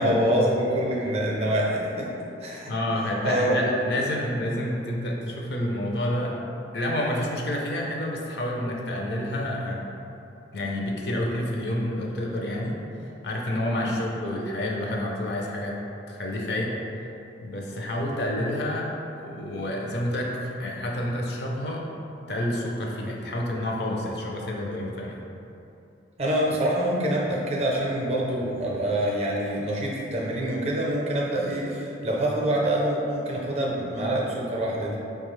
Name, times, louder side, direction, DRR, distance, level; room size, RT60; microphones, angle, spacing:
voice 1, 0.0-2.1 2.4-2.7 3.2-3.6 13.8-14.0 26.2-35.0, right 1 dB, 35° right, -3 dB, 0.5 m, -25 dB
voice 2, 2.7-6.4 6.7-9.9 10.5-12.8 13.2-15.8 16.1-17.1 17.4-18.9 19.2-21.8 22.3-25.2, left 1 dB, 65° left, -2 dB, 0.5 m, -29 dB
4.7 x 2.3 x 3.1 m, 2.8 s
head